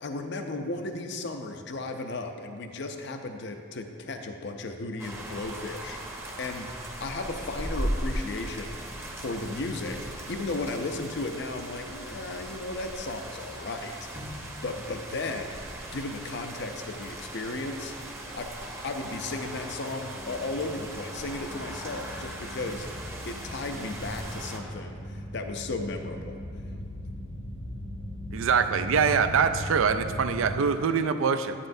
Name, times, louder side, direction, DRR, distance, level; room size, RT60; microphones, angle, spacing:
voice 1, 0.0-6.7 7.0-15.6 15.9-17.9 18.3-18.5 18.8-22.9 23.2-26.4, left 2 dB, 55° left, 5 dB, 0.5 m, -35 dB
sound 1, 5.0-24.6, right 1 dB, 10° right, 0.7 m, -38 dB
sound 2, 17.8-30.6, equal, 75° left, 1.1 m, -40 dB
voice 2, 28.3-31.5, right 6 dB, 70° right, 9 dB, 0.4 m, -24 dB
9.8 x 9.7 x 2.6 m, 2.4 s
head